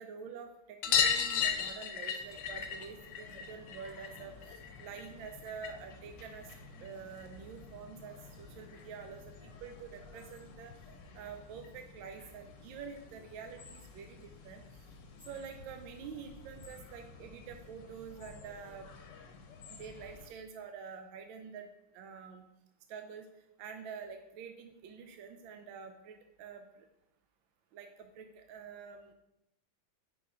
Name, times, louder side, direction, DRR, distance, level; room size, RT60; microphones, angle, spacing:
voice 1, 0.0-6.5 6.8-10.7 11.1-14.6 15.3-18.9 19.7-22.5 22.9-23.3 23.6-26.9 27.7-29.1, right 6 dB, 75° right, 6 dB, 1.2 m, -47 dB
sound 1, 0.8-5.9 6.2-7.4 8.7-8.8 9.0-9.1 9.4-9.5 10.8-10.9 11.2-11.3 11.6-11.7 13.0-13.1 13.8-13.9, left 7 dB, 85° left, 1.5 m, -34 dB
sound 2, 2.2-20.3, left 4 dB, 65° left, 1.3 m, -53 dB
5.6 x 4.2 x 4.9 m, 0.87 s
omnidirectional pair, 2.4 m